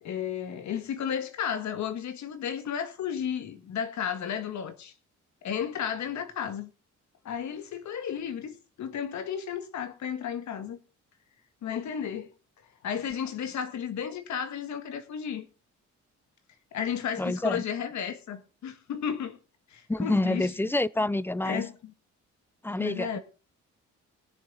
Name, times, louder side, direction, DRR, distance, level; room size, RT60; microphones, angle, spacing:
voice 1, 0.0-4.9 5.4-6.7 7.2-10.8 11.6-12.3 12.8-15.5 16.7-19.4 19.7-20.5 21.4-21.9 22.8-23.2, left 8 dB, 70° left, 1.7 m, -33 dB
voice 2, 17.2-17.6 19.9-21.6 22.6-23.2, left 1 dB, 5° left, 0.6 m, -27 dB
20.5 x 6.9 x 3.9 m
cardioid pair, 90°, 30 cm